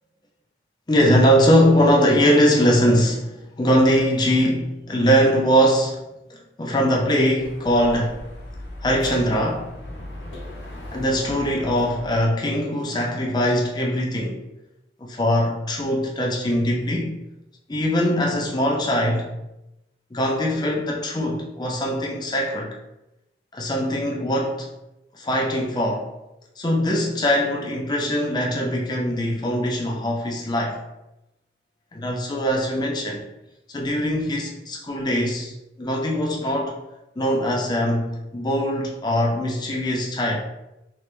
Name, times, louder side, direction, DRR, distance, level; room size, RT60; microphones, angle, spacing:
voice 1, 0.9-6.0 6.3-8.2 8.8-9.7 10.9-14.4 15.0-17.1 17.7-19.3 20.1-22.8 23.5-24.7 25.1-26.1 26.6-30.8 31.9-33.3 33.7-36.8 37.2-40.4, equal, 25° left, 0.5 m, -21 dB
Dog / Motorcycle, 7.3-12.3, left 1 dB, 80° left, 0.8 m, -38 dB
3.3 x 3.0 x 3.0 m
head